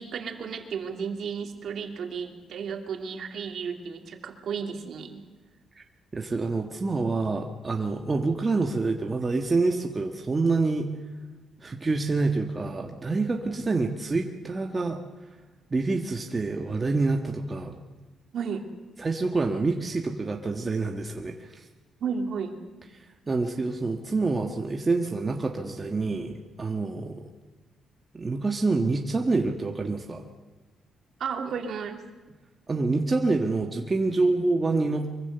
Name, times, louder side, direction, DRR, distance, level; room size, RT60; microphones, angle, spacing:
voice 1, 0.0-5.2 18.3-18.7 22.0-22.6 31.2-32.0, right 6 dB, 55° right, 4 dB, 2.8 m, -33 dB
voice 2, 6.1-10.9 11.6-15.0 15.7-17.7 19.0-21.7 23.3-27.2 28.1-30.3 32.7-35.1, right 3 dB, 20° right, 2 dB, 1.4 m, -27 dB
24.5 x 23.5 x 6.9 m, 1.3 s
cardioid pair, 155°, 0 cm